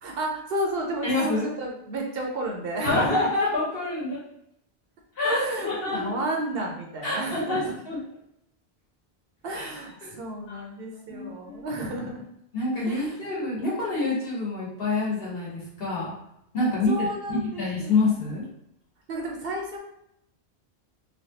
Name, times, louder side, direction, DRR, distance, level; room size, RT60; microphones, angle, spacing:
voice 1, 0.0-3.3 5.2-7.7 9.4-12.2 12.9-13.2 16.6-18.2 19.1-19.8, right 1 dB, 65° right, 0 dB, 0.8 m, -32 dB
voice 2, 1.0-1.4 2.8-4.2 5.2-6.1 7.0-8.0 9.5-9.7 10.0-10.1 10.5-10.6 11.1-11.7 12.5-16.1 16.5-18.5, left 3 dB, 60° left, -6 dB, 1.3 m, -27 dB
3.2 x 2.3 x 2.7 m, 0.79 s
omnidirectional pair, 1.1 m